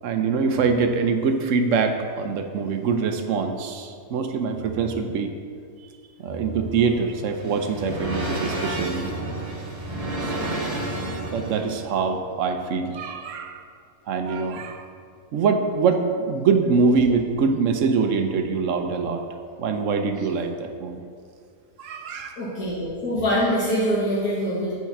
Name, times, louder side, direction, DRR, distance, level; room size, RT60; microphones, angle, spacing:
voice 1, 0.0-5.3 6.2-9.1 10.2-10.9 11.3-13.6 14.1-14.9 15.3-19.2 19.6-21.0 21.8-22.4, right 5 dB, 65° right, 6 dB, 1.0 m, -24 dB
sound 1, 6.9-11.8, right 1 dB, 25° right, 1.2 m, -31 dB
voice 2, 22.4-24.7, equal, 75° left, -9 dB, 2.3 m, -24 dB
9.3 x 4.2 x 5.8 m, 2.2 s
omnidirectional pair, 1.6 m